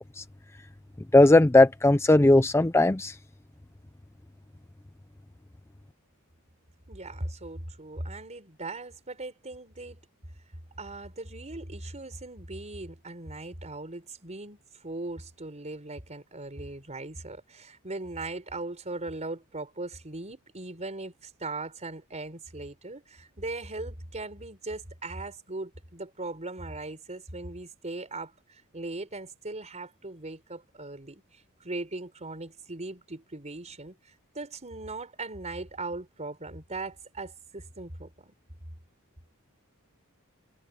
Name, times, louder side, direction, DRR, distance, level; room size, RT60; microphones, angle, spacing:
voice 1, 1.1-3.1, left 2 dB, 10° left, 0.5 m, -18 dB
voice 2, 6.9-10.0 10.8-34.0 34.3-38.3, right 2 dB, 30° right, 4.4 m, -39 dB
head